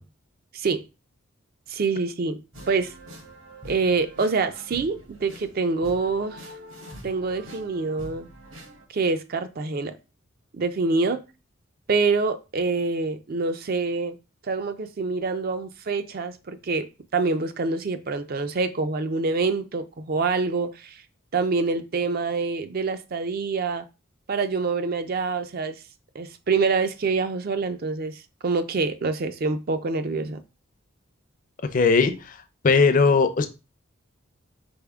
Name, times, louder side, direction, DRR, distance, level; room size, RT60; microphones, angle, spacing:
voice 1, 0.5-0.8 1.7-2.4 2.7-2.9 3.6-6.5 7.0-8.3 8.9-10.0 10.5-11.2 11.9-14.2 14.4-21.0 21.3-23.8 24.3-25.8 26.1-30.4, right 4 dB, 45° right, 0.4 m, -26 dB
sound 1, 2.5-8.9, equal, 65° right, 1.3 m, -44 dB
voice 2, 31.7-32.4 32.6-33.5, left 4 dB, 40° left, 0.5 m, -19 dB
4.2 x 3.5 x 3.5 m
head